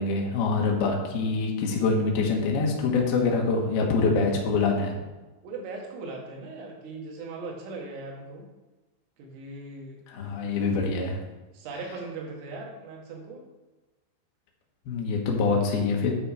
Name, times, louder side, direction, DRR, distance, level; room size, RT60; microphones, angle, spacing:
voice 1, 0.0-5.0 10.1-11.2 14.9-16.1, left 4 dB, 65° left, -1 dB, 2.9 m, -25 dB
voice 2, 5.4-8.5 9.2-10.0 11.5-13.4, right 3 dB, 85° right, 0 dB, 4.2 m, -39 dB
9.2 x 6.1 x 4.9 m, 1.1 s
omnidirectional pair, 5.7 m